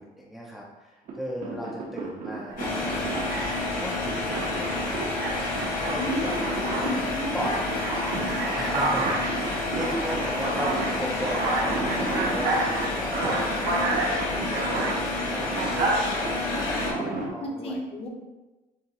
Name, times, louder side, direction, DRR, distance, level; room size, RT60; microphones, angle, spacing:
voice 1, 0.0-3.1 3.5-5.1 5.6-6.9 7.3-7.8 8.6-17.8, equal, ahead, -4 dB, 0.5 m, -36 dB
sound 1, 1.1-17.3, right 3 dB, 65° right, 0.9 m, -36 dB
Alarm, 2.5-2.7 3.1-3.8 4.3-7.0 7.4-15.0 15.5-16.0, right 2 dB, 80° right, 1.1 m, -30 dB
sound 2, 2.6-16.9, left 2 dB, 60° left, 1.5 m, -30 dB
voice 2, 6.0-6.3 6.8-7.6 16.5-17.0 17.4-18.1, left 1 dB, 35° left, 1 dB, 0.8 m, -32 dB
6.8 x 2.7 x 2.8 m, 1.1 s
cardioid pair, 170°, 16 cm